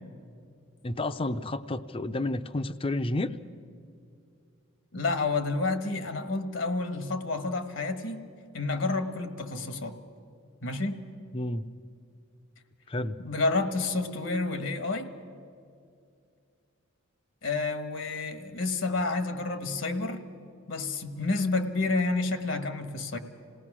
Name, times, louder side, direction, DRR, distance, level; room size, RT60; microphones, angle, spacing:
voice 1, 0.8-3.3 11.3-11.6 12.9-13.2, left 2 dB, 25° left, 12 dB, 0.5 m, -30 dB
voice 2, 4.9-8.3 8.5-10.0 10.6-11.0 13.2-15.1 17.4-20.2 20.7-23.2, left 3 dB, 70° left, 8 dB, 1.3 m, -29 dB
27.5 x 18.0 x 6.1 m, 2.4 s
head